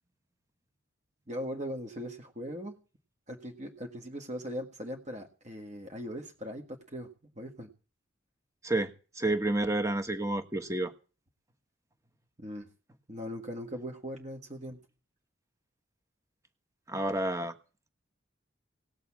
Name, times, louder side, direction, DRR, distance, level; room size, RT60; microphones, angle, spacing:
voice 1, 1.3-2.7 3.3-7.1 7.4-7.7 12.4-12.7 13.1-14.8, equal, 35° right, 2 dB, 1.8 m, -39 dB
voice 2, 8.6-10.9 16.9-17.5, right 2 dB, 15° right, 8 dB, 1.3 m, -30 dB
18.0 x 7.0 x 8.5 m, 0.35 s
head